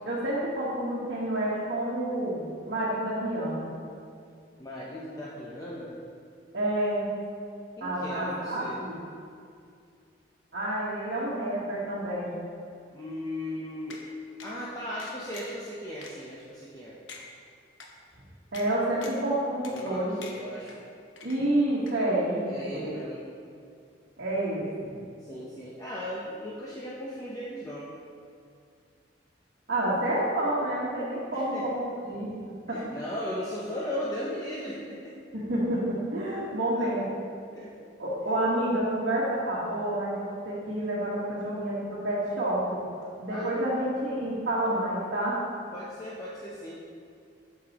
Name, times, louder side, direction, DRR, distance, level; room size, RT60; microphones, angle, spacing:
voice 1, 0.0-3.7 6.5-7.1 7.8-9.0 10.5-12.3 18.5-20.1 21.2-22.9 24.2-24.9 29.7-32.3 32.7-33.0 35.5-35.8 36.1-37.0 38.0-42.8 43.2-45.4, right 1 dB, 65° right, -10 dB, 1.4 m, -29 dB
voice 2, 4.6-6.0 7.8-8.8 12.9-14.0 14.4-17.0 19.6-20.9 22.5-23.2 25.2-27.9 31.3-31.7 32.7-35.2 36.8-37.0 37.5-37.7 43.3-44.0 45.7-46.8, equal, 20° left, -7 dB, 0.7 m, -37 dB
sound 1, 13.9-14.0 14.4-14.5 15.0-15.6 16.0-16.1 16.6-16.7 17.1-17.2 17.8-17.9 18.5-18.7 19.0-19.3 19.6-19.9 20.2-20.8 21.2-21.6 21.9-22.0, left 4 dB, 85° left, 0.9 m, -45 dB
8.5 x 6.8 x 3.0 m, 2.3 s
head